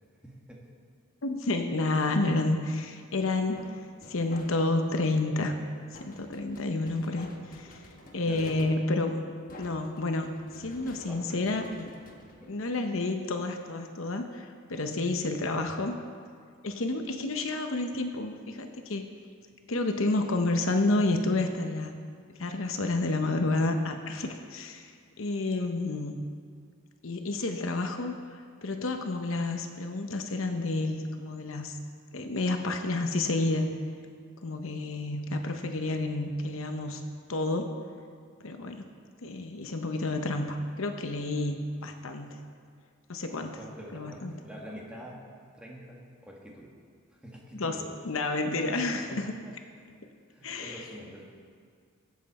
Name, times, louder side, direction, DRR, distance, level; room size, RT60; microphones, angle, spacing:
voice 1, 0.2-0.6 8.2-8.7 11.1-11.6 12.4-12.6 43.5-45.3 45.5-46.7 47.1-48.0 49.1-49.5 50.3-51.2, equal, 5° right, -3 dB, 1.8 m, -45 dB
voice 2, 1.2-3.8 4.1-5.6 5.9-7.9 8.1-9.3 9.6-11.9 12.5-16.0 16.6-19.1 19.7-21.9 22.4-24.9 25.2-26.1 27.0-31.8 32.1-33.7 34.4-37.0 37.3-37.7 38.4-38.8 39.2-42.4 43.1-43.6 43.9-44.3 47.5-47.8 48.0-49.3 50.4-50.8, left 2 dB, 65° left, 5 dB, 0.8 m, -30 dB
sound 1, 3.4-4.9 5.9-13.1, left 1 dB, 40° left, 1.2 m, -50 dB
22.0 x 7.7 x 4.2 m, 2.1 s
head